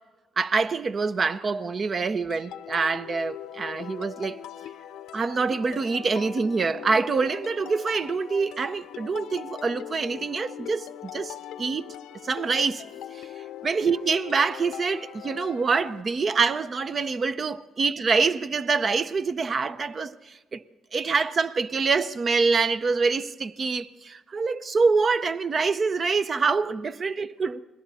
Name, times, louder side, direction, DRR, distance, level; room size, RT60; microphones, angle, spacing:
voice 1, 0.4-4.4 5.1-11.9 12.2-12.9 13.1-13.3 13.6-20.6 20.9-27.6, right 4 dB, 40° right, 0.7 m, -25 dB
sound 1, 2.3-16.0, left 10 dB, 85° left, 0.6 m, -40 dB
30.0 x 21.0 x 4.2 m
cardioid pair, 90°, 0 cm